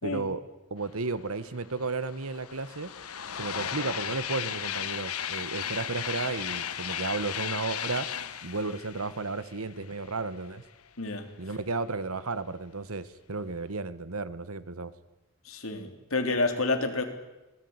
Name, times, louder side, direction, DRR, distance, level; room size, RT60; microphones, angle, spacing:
voice 1, 0.0-0.4 0.7-2.9 3.3-8.1 8.4-10.6 11.4-14.9, right 3 dB, 80° right, 15 dB, 1.4 m, -33 dB
sound 1, 1.3-1.4 1.7-10.3, left 9 dB, 90° left, 1.3 m, -35 dB
voice 2, 11.0-11.3 15.4-17.0, left 3 dB, 70° left, 6 dB, 3.6 m, -29 dB
26.5 x 19.0 x 9.7 m, 1.0 s
head